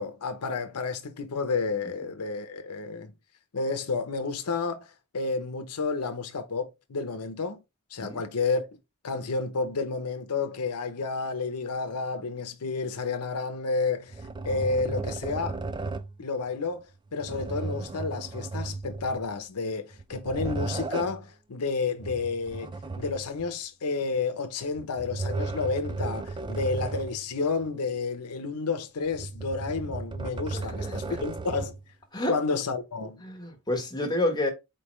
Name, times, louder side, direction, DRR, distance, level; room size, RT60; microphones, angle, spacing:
voice 1, 0.0-3.1 3.5-4.9 5.1-7.6 7.9-8.7 9.0-14.1 14.4-15.6 16.2-16.9 17.1-31.8 32.3-33.2, left 4 dB, 90° left, 0.7 m, -30 dB
sound 1, 14.1-16.2 17.2-19.4 19.9-21.2 22.0-23.5 24.8-27.2 27.6-27.7 29.1-31.8, right 3 dB, 20° right, 0.3 m, -35 dB
voice 2, 30.5-31.2 32.1-32.4 33.2-34.5, left 1 dB, 20° left, 1.1 m, -29 dB
4.5 x 3.3 x 3.1 m
head